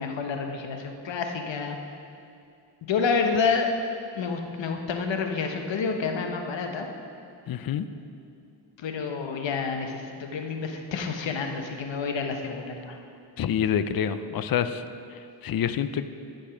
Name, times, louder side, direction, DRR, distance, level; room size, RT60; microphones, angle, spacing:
voice 1, 0.0-1.8 2.9-3.7 4.1-6.9 8.8-13.0, left 5 dB, 70° left, 4 dB, 1.2 m, -29 dB
voice 2, 7.5-7.9 13.4-14.8 15.1-16.1, left 9 dB, 50° left, 11 dB, 0.6 m, -27 dB
14.5 x 5.3 x 5.1 m, 2.5 s
cardioid pair, 70°, 47 cm